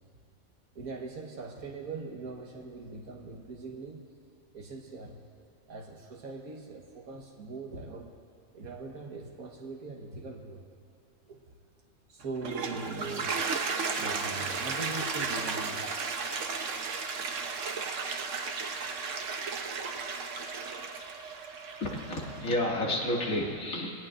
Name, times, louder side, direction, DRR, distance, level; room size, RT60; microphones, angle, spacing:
voice 1, 0.8-4.1 4.5-5.2 5.7-8.1 8.5-10.6 11.2-11.5 12.1-13.4 13.9-16.0, right 3 dB, 90° right, -1 dB, 1.8 m, -41 dB
Toilet flush, 12.2-22.5, right 4 dB, 65° right, 1.3 m, -34 dB
voice 2, 21.8-23.9, left 1 dB, 75° left, -3 dB, 2.7 m, -30 dB
23.0 x 18.0 x 2.5 m, 2.5 s
omnidirectional pair, 1.5 m